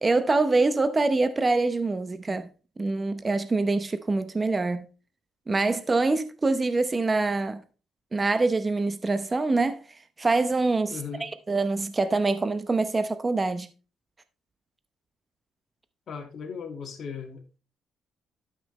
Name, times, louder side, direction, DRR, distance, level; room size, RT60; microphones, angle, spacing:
voice 1, 0.0-2.5 2.8-4.9 5.5-7.6 8.1-9.8 10.2-13.7, right 3 dB, 25° right, 0.9 m, -25 dB
voice 2, 10.9-11.3 16.1-17.4, left 6 dB, 55° left, 2.0 m, -37 dB
12.0 x 5.9 x 3.2 m
cardioid pair, 90°, 0 cm